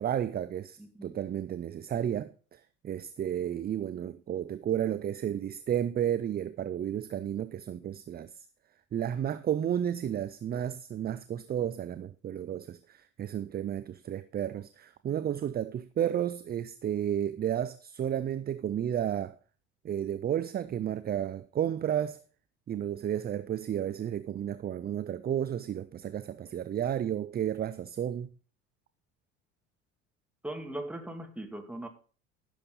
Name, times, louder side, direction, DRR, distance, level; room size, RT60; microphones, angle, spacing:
voice 1, 0.0-8.3 8.9-19.4 19.8-22.2 22.7-28.3, right 10 dB, 25° right, 0.5 m, -32 dB
voice 2, 0.8-1.2 30.4-31.9, right 1 dB, 5° right, 2.5 m, -39 dB
15.0 x 7.0 x 4.0 m
hypercardioid pair, 70°, 41 cm